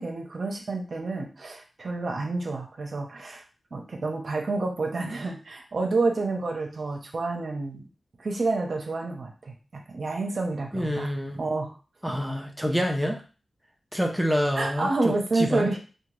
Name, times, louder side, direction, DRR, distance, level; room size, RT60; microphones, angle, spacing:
voice 1, 0.0-3.4 3.7-7.8 8.2-11.1 11.4-11.7 12.1-12.2 14.6-15.8, right 3 dB, 60° right, 2 dB, 0.6 m, -29 dB
voice 2, 10.7-11.4 12.0-13.2 13.9-15.7, equal, 5° right, 2 dB, 0.5 m, -27 dB
2.7 x 2.1 x 3.1 m, 0.35 s
cardioid pair, 70°, 0 cm